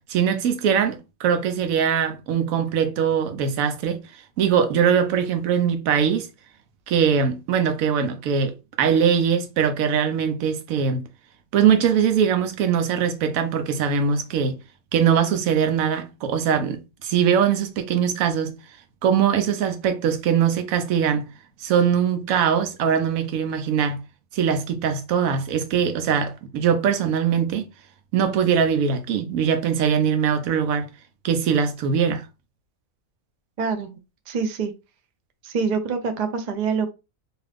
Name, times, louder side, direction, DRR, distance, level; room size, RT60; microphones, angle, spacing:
voice 1, 0.1-4.0 4.4-6.3 6.9-11.0 11.5-14.6 14.9-18.5 19.0-21.3 21.6-24.0 24.3-27.6 28.1-30.9 31.2-32.2, right 7 dB, 80° right, 1.0 m, -21 dB
voice 2, 33.6-33.9 34.3-34.7 35.4-36.9, right 5 dB, 55° right, 0.5 m, -25 dB
2.8 x 2.4 x 3.3 m
omnidirectional pair, 1.4 m